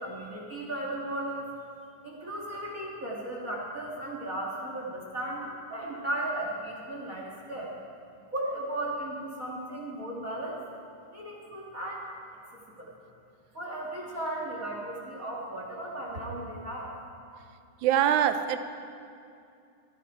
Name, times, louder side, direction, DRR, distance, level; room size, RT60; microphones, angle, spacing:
voice 1, 0.0-1.5 2.0-7.7 8.3-10.6 11.1-12.1 12.5-12.9 13.5-16.9, right 1 dB, 35° right, -3 dB, 1.7 m, -36 dB
voice 2, 17.8-18.6, right 10 dB, 75° right, 10 dB, 1.9 m, -24 dB
25.0 x 10.0 x 4.6 m, 2.5 s
omnidirectional pair, 3.8 m